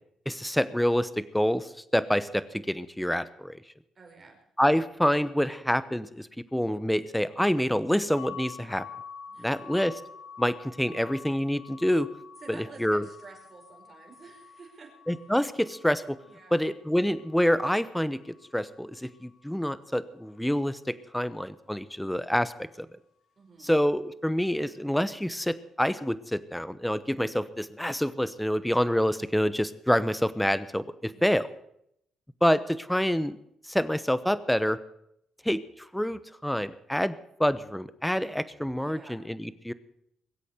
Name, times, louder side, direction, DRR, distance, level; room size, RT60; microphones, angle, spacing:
voice 1, 0.3-3.6 4.6-8.8 9.4-10.0 10.4-12.1 12.8-13.1 15.1-16.2 16.5-18.2 18.5-22.5 22.8-22.9 23.6-31.5 32.4-33.4 33.7-34.8 35.4-39.7, equal, 5° left, 15 dB, 0.9 m, -27 dB
voice 2, 3.9-4.4 9.3-9.6 12.4-14.9 15.2-15.3 16.2-16.6 23.4-23.7 31.0-31.5 38.8-39.2, right 4 dB, 40° right, 2 dB, 5.0 m, -50 dB
sound 1, 8.2-19.9, left 7 dB, 85° left, 2.6 m, -48 dB
21.5 x 8.4 x 6.8 m, 0.75 s
cardioid pair, 90°, 0 cm